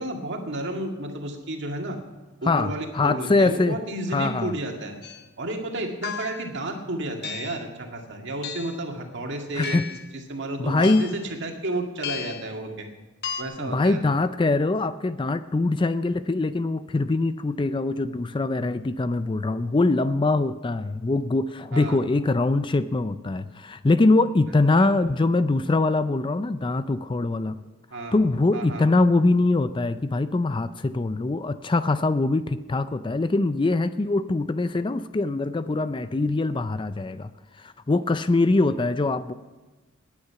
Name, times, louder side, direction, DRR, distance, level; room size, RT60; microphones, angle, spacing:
voice 1, 0.0-2.0 2.4-4.9 5.4-9.8 10.3-12.9 13.4-14.0 21.7-22.0 24.8-24.9 27.9-28.2 28.5-28.9, right 1 dB, 55° right, 3 dB, 2.1 m, -32 dB
voice 2, 2.5-3.8 4.1-4.5 9.5-9.9 10.6-11.0 13.6-27.6 28.1-37.3 37.6-39.3, left 2 dB, 25° left, 13 dB, 0.4 m, -23 dB
sound 1, 5.0-5.2 6.0-6.5 7.2-7.6 8.4-8.8 9.6-10.1 10.8-11.2 12.0-12.5 13.2-13.4, left 8 dB, 50° left, 1.0 m, -34 dB
18.0 x 9.6 x 5.8 m, 1.2 s
head